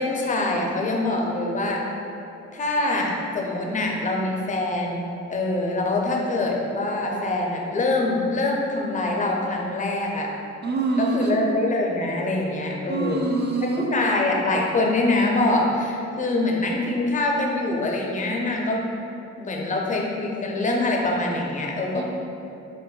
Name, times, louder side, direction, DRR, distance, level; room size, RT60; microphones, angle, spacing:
voice 1, 0.0-1.8 2.5-10.3 11.0-13.3 13.9-18.8 19.4-22.0, left 2 dB, 25° left, 0 dB, 0.5 m, -24 dB
voice 2, 10.6-11.4 12.9-13.9 21.9-22.0, right 3 dB, 35° right, 1 dB, 0.5 m, -25 dB
4.9 x 2.1 x 2.3 m, 2.8 s
cardioid pair, 90°, 30 cm